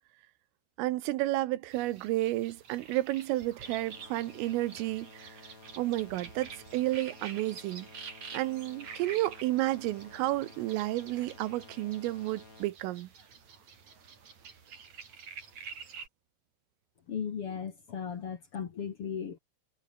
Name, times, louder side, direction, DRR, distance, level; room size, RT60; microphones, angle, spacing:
voice 1, 0.8-5.4 5.8-7.9 8.3-13.1, right 17 dB, 80° right, 3.7 m, -31 dB
sound 1, 1.7-16.1, right 6 dB, 40° right, 4.1 m, -48 dB
sound 2, 3.6-12.6, left 3 dB, 20° left, 3.4 m, -54 dB
voice 2, 17.1-19.4, left 7 dB, 80° left, 1.2 m, -36 dB
omnidirectional pair, 5.9 m